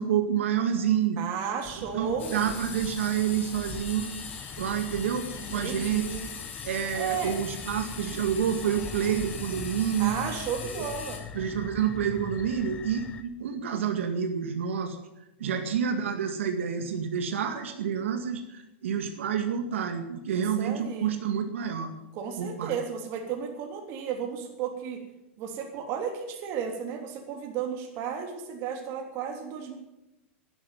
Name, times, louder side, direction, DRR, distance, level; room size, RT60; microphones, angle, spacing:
voice 1, 0.0-1.2 1.9-4.1 4.6-6.0 6.6-10.1 10.7-10.9 11.3-15.0 15.4-21.9 22.4-22.8, right 8 dB, 90° right, 5 dB, 2.1 m, -28 dB
voice 2, 1.2-2.4 5.3-6.3 6.9-7.4 10.0-11.2 15.4-15.7 20.3-21.1 22.1-25.0 25.4-29.8, right 7 dB, 40° right, 3 dB, 3.3 m, -34 dB
sound 1, 1.6-13.2, left 5 dB, 15° left, 1.0 m, -42 dB
sound 2, 2.2-11.2, left 6 dB, 80° left, 5.1 m, -41 dB
12.0 x 11.5 x 9.2 m, 0.94 s
supercardioid pair, 150°, 7 cm